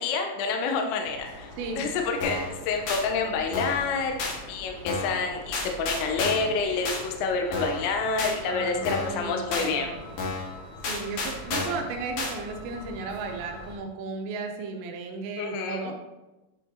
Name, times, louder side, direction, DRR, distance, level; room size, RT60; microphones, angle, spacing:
voice 1, 0.0-9.9 15.4-16.0, left 4 dB, 85° left, 3 dB, 2.8 m, -28 dB
sound 1, 1.0-13.8, left 1 dB, 30° left, 1.9 m, -44 dB
sound 2, 2.2-2.5 2.9-3.0 3.5-3.9 4.2-4.4 4.9-5.2 5.5-6.5 6.8-7.0 7.5-7.8 8.2-8.3 8.8-9.2 9.5-9.7 10.2-10.5 10.8-11.8 12.2-12.3, left 3 dB, 60° left, 2.2 m, -31 dB
voice 2, 8.4-10.0 10.8-16.0, right 4 dB, 80° right, 3 dB, 2.6 m, -35 dB
8.9 x 7.4 x 2.7 m, 1.1 s
omnidirectional pair, 5.7 m